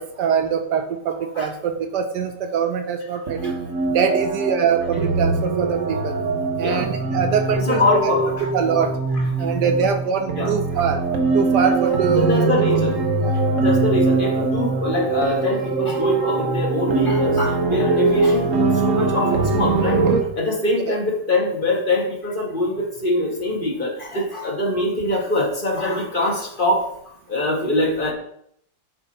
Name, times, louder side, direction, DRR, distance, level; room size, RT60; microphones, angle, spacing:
voice 1, 0.0-3.5 3.9-6.2 6.6-8.1 8.5-8.9 9.4-11.0 11.3-12.5 13.2-13.3 20.9-21.0, right 7 dB, 75° right, 6 dB, 1.2 m, -23 dB
sound 1, 3.3-20.2, right 3 dB, 55° right, 1.1 m, -22 dB
voice 2, 6.5-6.9 7.5-8.4 9.4-9.6 10.4-10.5 12.2-13.0 13.6-20.1 20.3-26.9 27.3-28.1, left 2 dB, 30° left, -1 dB, 1.3 m, -23 dB
8.5 x 3.3 x 4.1 m, 0.70 s
omnidirectional pair, 2.0 m